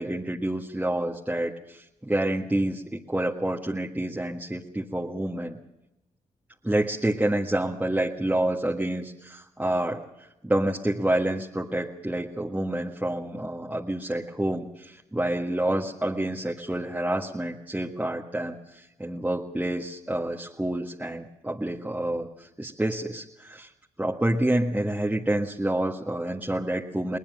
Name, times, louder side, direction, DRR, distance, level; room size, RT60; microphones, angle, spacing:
voice 1, 0.0-5.6 6.6-10.0 10.4-23.7 24.0-27.2, right 1 dB, 10° right, -1 dB, 1.7 m, -28 dB
21.0 x 19.5 x 6.5 m, 0.90 s
supercardioid pair, 45°, 15 cm